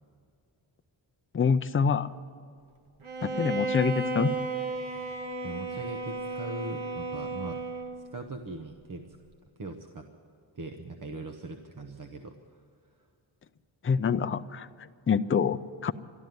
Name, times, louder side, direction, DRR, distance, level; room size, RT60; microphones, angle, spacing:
voice 1, 1.3-2.1 3.2-4.3 13.8-15.9, left 6 dB, 30° left, 10 dB, 0.5 m, -26 dB
Bowed string instrument, 3.0-8.1, right 3 dB, 85° right, 1.3 m, -33 dB
voice 2, 5.4-7.6 8.1-9.1 9.6-10.1 10.5-12.4, right 2 dB, 45° right, 5 dB, 1.0 m, -40 dB
13.0 x 12.0 x 9.3 m, 2.4 s
wide cardioid pair, 120°, 47 cm